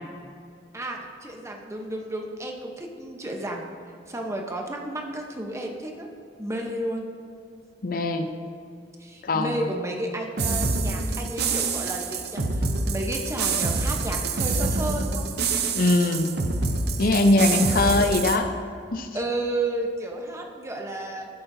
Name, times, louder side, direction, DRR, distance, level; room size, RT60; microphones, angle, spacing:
voice 1, 0.7-3.7 4.1-6.1 6.4-7.1 9.0-15.3 17.5-18.1 19.1-21.3, right 1 dB, 15° right, 1 dB, 0.9 m, -32 dB
voice 2, 7.8-8.3 9.2-9.7 15.7-16.3 17.0-18.5 18.9-19.1, left 2 dB, 55° left, 7 dB, 0.7 m, -21 dB
sound 1, 10.4-18.4, right 3 dB, 65° right, 0.7 m, -26 dB
14.5 x 7.8 x 2.7 m, 2.4 s
head